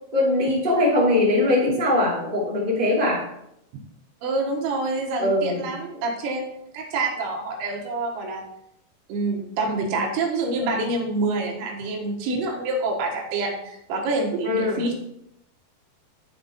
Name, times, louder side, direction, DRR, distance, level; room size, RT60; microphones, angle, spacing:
voice 1, 0.1-3.2 5.2-5.6 14.4-14.9, left 1 dB, 40° right, -6 dB, 0.7 m, -21 dB
voice 2, 4.2-8.4 9.1-14.9, right 2 dB, 70° right, 1 dB, 3.3 m, -27 dB
11.0 x 5.5 x 4.1 m, 0.78 s
omnidirectional pair, 5.9 m